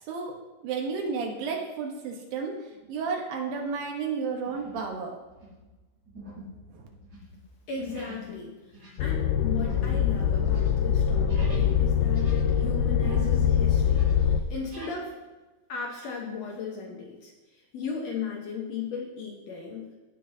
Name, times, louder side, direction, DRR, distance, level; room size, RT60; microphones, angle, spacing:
voice 1, 0.6-2.6 2.9-5.2 6.7-6.9, right 5 dB, 90° right, 1 dB, 3.0 m, -32 dB
sound 1, 2.7-3.1 3.6-3.8 4.4-4.9 5.2-11.8 12.1-13.5 13.8-15.0, equal, 45° right, 3.6 m, -46 dB
voice 2, 7.7-15.1 15.7-19.9, left 5 dB, 65° left, -1 dB, 1.9 m, -36 dB
sound 2, 9.0-14.4, left 8 dB, 80° left, 1.9 m, -23 dB
16.5 x 6.1 x 2.7 m, 1.2 s
omnidirectional pair, 3.9 m